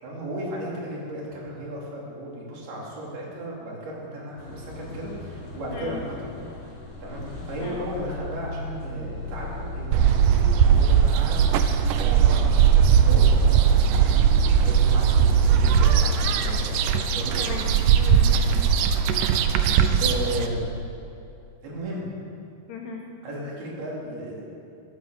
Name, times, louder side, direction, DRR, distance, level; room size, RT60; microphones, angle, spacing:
voice 1, 0.0-6.3 7.0-11.4 11.9-16.7 17.1-17.5 18.5-18.6 20.0-20.7 21.6-22.1 23.2-24.4, right 1 dB, 70° right, -4 dB, 5.3 m, -35 dB
sound 1, 4.4-20.7, left 1 dB, 60° left, 5.2 m, -36 dB
sound 2, 9.9-20.5, right 8 dB, 90° right, 1.8 m, -19 dB
voice 2, 17.4-18.6 22.7-23.0, left 5 dB, 85° left, -2 dB, 4.1 m, -37 dB
14.0 x 12.5 x 7.7 m, 2.7 s
omnidirectional pair, 4.7 m